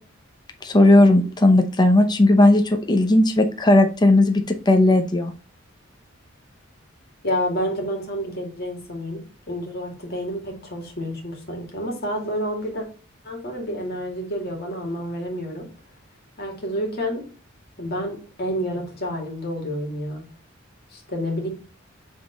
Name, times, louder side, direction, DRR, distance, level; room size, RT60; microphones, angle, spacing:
voice 1, 0.6-5.3, left 1 dB, 20° left, 6 dB, 0.7 m, -16 dB
voice 2, 7.2-9.2 9.5-12.8 13.2-15.7 16.4-17.2 17.8-20.2 20.9-21.5, equal, 50° left, 1 dB, 2.2 m, -29 dB
7.4 x 3.7 x 3.8 m, 0.38 s
head